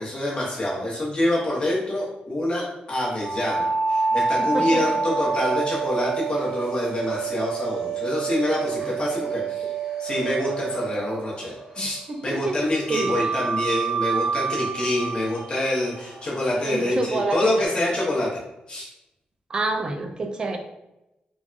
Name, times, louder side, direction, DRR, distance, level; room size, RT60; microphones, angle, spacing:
voice 1, 0.0-9.7 10.0-18.3 18.7-18.9, left 1 dB, 35° left, -5 dB, 0.8 m, -26 dB
sound 1, 3.2-12.0 12.9-17.6, right 5 dB, 85° right, 1.0 m, -28 dB
voice 2, 11.8-12.5 12.9-13.1 16.6-17.5 19.5-20.6, right 3 dB, 30° right, 5 dB, 0.3 m, -28 dB
3.3 x 2.2 x 2.4 m, 0.91 s
wide cardioid pair, 165°, 3 cm